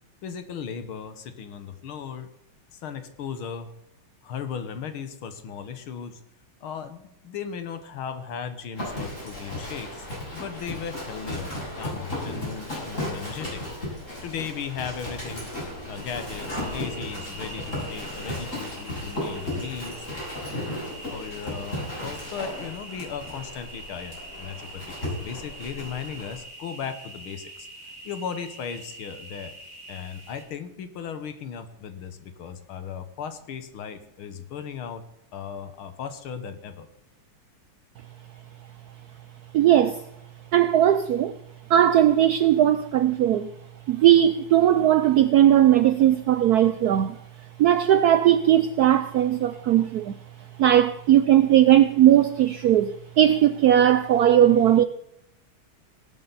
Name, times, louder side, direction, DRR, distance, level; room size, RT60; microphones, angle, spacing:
voice 1, 0.2-2.3 2.7-3.7 4.2-6.2 6.6-10.1 10.3-13.6 14.2-15.5 15.9-20.1 21.1-27.7 28.0-29.5 29.9-35.0 35.3-36.9, left 7 dB, 75° left, 2.0 m, -36 dB
Livestock farm animals working animals, 8.8-26.4, left 1 dB, 35° left, 7.7 m, -35 dB
sound 1, 15.9-30.4, right 2 dB, 60° right, 5.3 m, -44 dB
voice 2, 39.5-40.0 40.5-41.4 41.7-43.5 43.9-47.2 47.6-50.1 50.6-54.8, right 11 dB, 80° right, 0.8 m, -18 dB
18.0 x 11.0 x 4.1 m
omnidirectional pair, 2.4 m